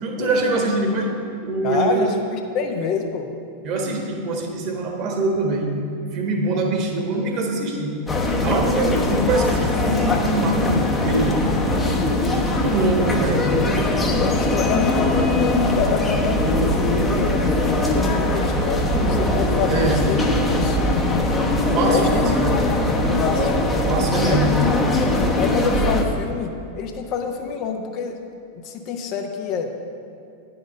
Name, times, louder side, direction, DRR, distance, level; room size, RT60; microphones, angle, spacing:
voice 1, 0.0-1.1 1.4-2.1 3.6-5.8 6.1-8.0 8.4-11.4 12.3-13.4 19.7-20.0 21.7-22.3 23.9-24.5, right 2 dB, 40° right, 1 dB, 1.5 m, -23 dB
voice 2, 1.6-3.3 14.2-21.3 21.7-22.2 22.6-22.8 23.2-23.6 24.2-24.4 25.4-28.2 28.6-29.7, left 6 dB, 40° left, 4 dB, 0.8 m, -27 dB
sound 1, 8.1-26.0, left 1 dB, 15° left, 1.0 m, -21 dB
9.9 x 5.9 x 6.5 m, 2.6 s
figure-of-eight pair, 90°, 0 cm